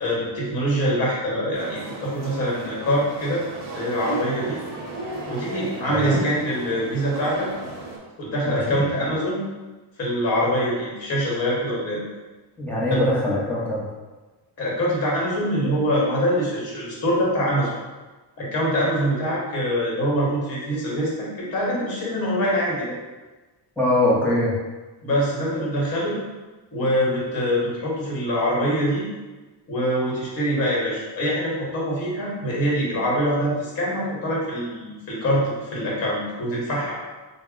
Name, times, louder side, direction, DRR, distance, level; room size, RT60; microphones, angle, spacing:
voice 1, 0.0-3.4 3.7-4.6 5.3-7.5 8.2-9.4 10.0-12.0 14.6-17.7 18.4-22.9 25.0-26.2 26.7-29.0 29.7-36.9, equal, 35° left, -5 dB, 1.1 m, -24 dB
sound 1, 1.5-8.0, right 3 dB, 40° right, 0.9 m, -35 dB
voice 2, 5.9-6.2 8.4-8.8 12.6-13.9 23.8-24.6, left 1 dB, 5° left, -7 dB, 0.6 m, -22 dB
4.2 x 2.1 x 3.7 m, 1.2 s
cardioid pair, 175°, 42 cm